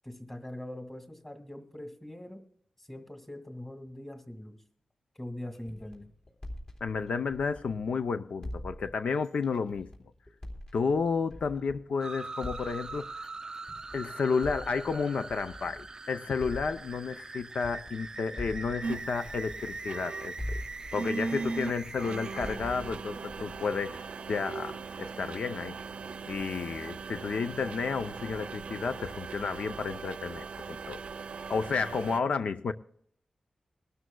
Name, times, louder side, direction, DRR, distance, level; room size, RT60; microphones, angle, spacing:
voice 1, 0.0-2.4 2.8-4.6 5.2-6.1, left 1 dB, 15° left, 2.0 m, -42 dB
sound 1, 5.5-8.0 8.4-11.9 12.4-16.0 16.4-20.1 20.4-24.5, left 1 dB, 45° left, 3.4 m, -44 dB
voice 2, 6.8-9.9 10.7-13.3 13.9-20.3 20.9-25.8 26.3-31.0 31.5-32.7, left 5 dB, 85° left, 0.6 m, -31 dB
sound 2, 12.0-22.6, right 3 dB, 35° right, 0.4 m, -42 dB
sound 3, 18.8-32.2, right 4 dB, 80° right, 0.6 m, -39 dB
21.5 x 12.5 x 2.3 m
wide cardioid pair, 105°, 2 cm